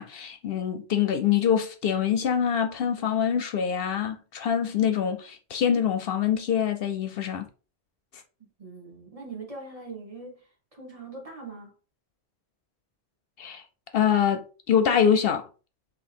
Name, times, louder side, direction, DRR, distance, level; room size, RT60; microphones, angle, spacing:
voice 1, 0.0-7.5 13.4-13.6 13.9-15.5, left 8 dB, 65° left, 0.7 m, -25 dB
voice 2, 8.6-10.4 10.7-11.7, right 3 dB, 35° right, 1.5 m, -41 dB
3.6 x 2.8 x 4.2 m
omnidirectional pair, 1.1 m